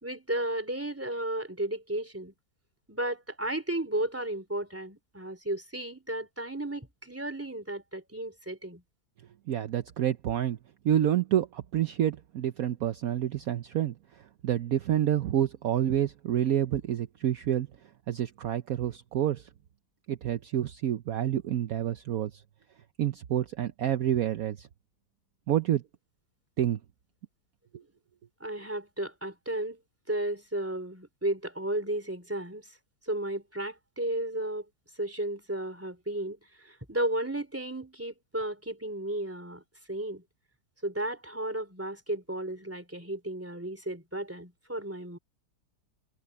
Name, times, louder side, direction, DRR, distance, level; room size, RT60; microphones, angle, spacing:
voice 1, 0.0-2.3 2.9-8.8 28.4-29.8 30.1-32.8 33.0-34.6 34.9-39.6 39.9-40.2 40.8-45.2, right 1 dB, 10° right, 3.3 m, -34 dB
voice 2, 9.5-10.6 10.8-17.7 18.1-19.5 20.1-22.4 23.0-24.7 25.5-25.8 26.6-26.8, right 11 dB, 65° right, 1.1 m, -28 dB
omnidirectional pair, 1.8 m